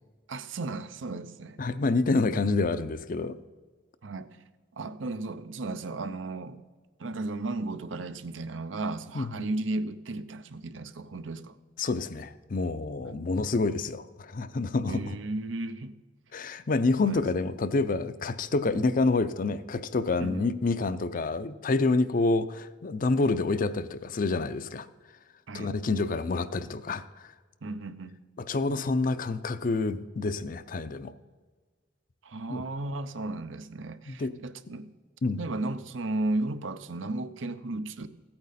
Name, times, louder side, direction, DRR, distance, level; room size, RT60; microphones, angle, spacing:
voice 1, 0.3-1.6 4.0-4.3 4.8-6.6 7.0-11.6 13.1-13.2 14.9-16.0 17.0-17.2 18.7-18.9 20.2-20.5 25.5-25.7 27.6-28.2 32.2-34.9 35.4-38.1, right 2 dB, 90° right, 11 dB, 0.7 m, -34 dB
voice 2, 1.6-3.3 9.1-9.3 11.8-15.2 16.3-24.9 25.5-27.3 28.4-31.1 32.5-32.6 34.1-34.3 35.2-35.4, left 3 dB, 45° left, 13 dB, 0.5 m, -28 dB
15.5 x 8.7 x 4.2 m, 1.4 s
head